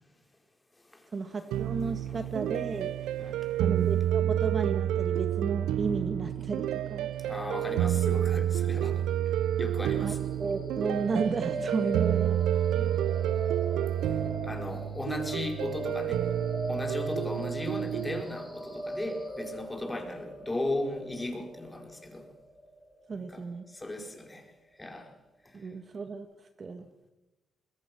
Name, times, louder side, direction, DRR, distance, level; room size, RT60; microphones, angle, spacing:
voice 1, 1.1-2.9 3.6-7.1 10.0-12.6 23.1-23.6 25.5-26.3 26.6-26.9, right 4 dB, 40° right, 8 dB, 1.8 m, -33 dB
sound 1, 1.5-18.2, right 11 dB, 90° right, 0.8 m, -29 dB
voice 2, 1.8-2.3 3.2-3.5 7.2-10.2 12.7-13.0 14.0-16.3 16.7-22.3 23.1-24.5 24.8-25.1 25.4-25.7, left 1 dB, 15° left, 3 dB, 4.9 m, -37 dB
sound 2, 10.3-24.3, right 1 dB, 5° right, 6.2 m, -41 dB
25.0 x 21.0 x 6.3 m, 1.0 s
cardioid pair, 90°, 0 cm